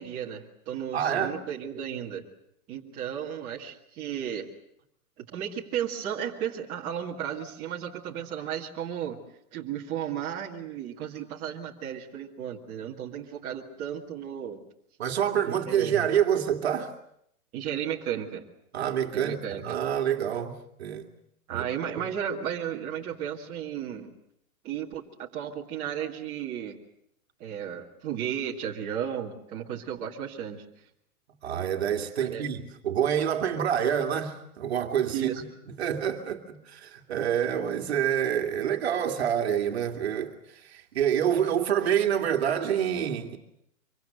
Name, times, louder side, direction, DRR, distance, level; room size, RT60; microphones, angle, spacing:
voice 1, 0.0-2.2 2.7-4.5 5.2-9.2 9.5-14.6 15.4-16.1 17.5-18.5 19.1-19.8 21.5-24.1 24.6-26.8 27.4-30.6 32.2-32.5 35.1-35.4, right 9 dB, 15° right, 2.0 m, -34 dB
voice 2, 0.9-1.4 15.0-16.9 18.7-21.1 21.5-21.7 31.4-35.2 35.8-43.4, right 9 dB, 45° right, 2.4 m, -27 dB
25.0 x 24.0 x 7.9 m
hypercardioid pair, 175°, 44 cm